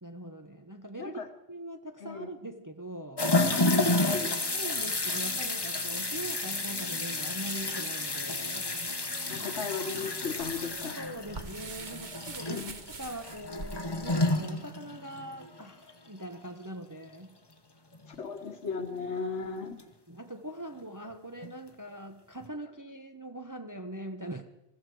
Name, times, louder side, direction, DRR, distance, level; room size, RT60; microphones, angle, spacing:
voice 1, 0.0-1.2 1.5-3.3 4.6-8.9 9.4-9.5 11.0-12.6 13.0-17.4 20.1-24.5, right 1 dB, 20° right, 6 dB, 0.8 m, -42 dB
voice 2, 1.0-1.3 2.0-2.3 3.3-4.4 9.3-11.0 12.5-12.8 18.1-19.8, left 5 dB, 65° left, 7 dB, 1.7 m, -36 dB
sound 1, 3.2-15.6 15.9-16.0 17.9-18.0 19.8-19.9 21.4-21.5 22.4-22.5, left 2 dB, 20° left, 1.0 m, -31 dB
sound 2, 7.4-14.3, right 3 dB, 40° right, 1.2 m, -46 dB
21.0 x 14.5 x 4.6 m, 0.88 s
omnidirectional pair, 1.3 m